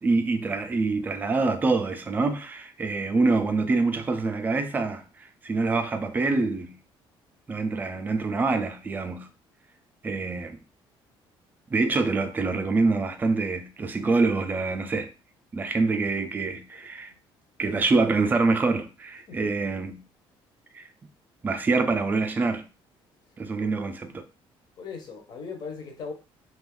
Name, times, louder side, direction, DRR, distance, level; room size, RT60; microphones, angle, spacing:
voice 1, 0.0-5.0 5.4-6.7 7.5-9.3 10.0-10.6 11.7-15.1 15.5-17.1 17.6-20.0 20.7-20.8 21.4-22.6 23.4-24.2, right 3 dB, 20° right, 0.3 m, -25 dB
voice 2, 24.8-26.1, left 5 dB, 45° left, 0.6 m, -38 dB
2.5 x 2.3 x 3.6 m
cardioid pair, 155°, 10 cm